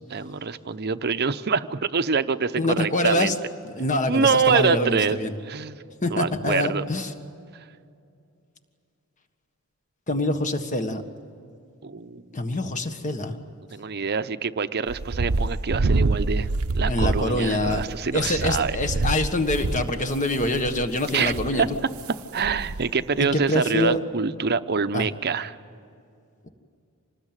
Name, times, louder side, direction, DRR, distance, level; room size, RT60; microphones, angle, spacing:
voice 1, 0.1-3.3 4.1-5.2 5.5-5.8 6.1-6.8 11.8-12.4 13.7-18.8 21.1-21.7 22.3-25.6, right 5 dB, 50° right, 11 dB, 0.8 m, -25 dB
voice 2, 2.6-3.3 3.6-5.3 6.0-7.1 10.1-11.0 12.3-13.4 16.8-17.8 18.1-21.6 23.2-24.0 24.9-25.1, left 1 dB, 35° left, 7 dB, 1.6 m, -25 dB
sound 1, 14.9-22.1 22.4-22.9 23.2-23.3 23.8-23.9, right 2 dB, 80° right, 0.8 m, -27 dB
26.5 x 19.5 x 9.1 m, 2.4 s
head